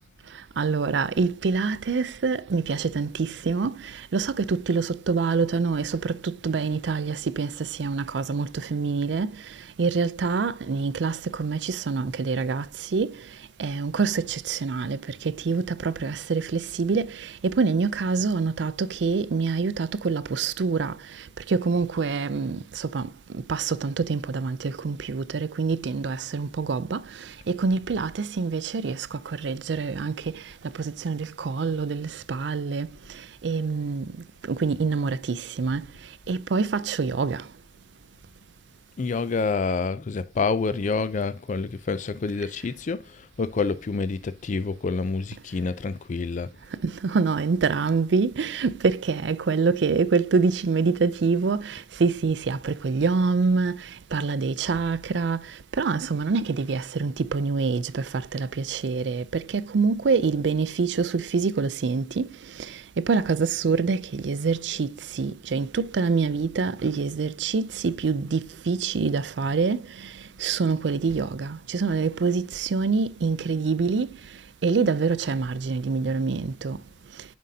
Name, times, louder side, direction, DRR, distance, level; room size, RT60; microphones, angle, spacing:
voice 1, 0.6-9.3 9.8-12.7 12.9-13.1 13.6-20.9 21.5-23.1 23.5-27.0 27.5-30.4 30.8-32.9 33.4-34.1 34.5-35.8 36.3-37.4 46.8-53.8 54.1-55.4 55.8-62.3 62.7-70.1 70.4-74.1 74.6-76.8, right 4 dB, 75° right, 0.5 m, -26 dB
voice 2, 39.0-46.5, left 4 dB, 45° left, 0.4 m, -28 dB
7.3 x 5.3 x 2.7 m
head